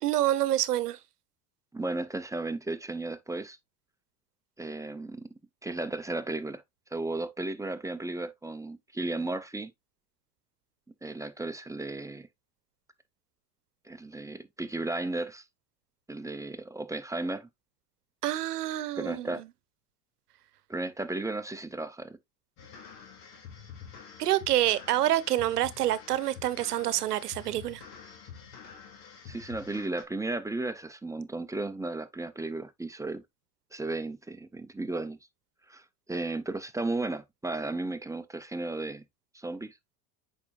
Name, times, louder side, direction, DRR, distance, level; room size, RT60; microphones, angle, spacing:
voice 1, 0.0-1.0 18.2-19.3 24.2-27.8, right 13 dB, 85° right, 0.9 m, -27 dB
voice 2, 1.7-3.6 4.6-5.3 5.6-6.6 6.9-9.7 11.0-12.3 13.8-15.4 16.1-17.5 19.0-19.4 20.7-22.2 29.3-33.2 33.7-35.2 35.7-39.0 39.3-39.7, right 2 dB, 5° right, 0.9 m, -34 dB
sound 1, 22.6-30.0, left 6 dB, 55° left, 2.8 m, -47 dB
8.5 x 5.5 x 2.5 m
hypercardioid pair, 85°, 45 cm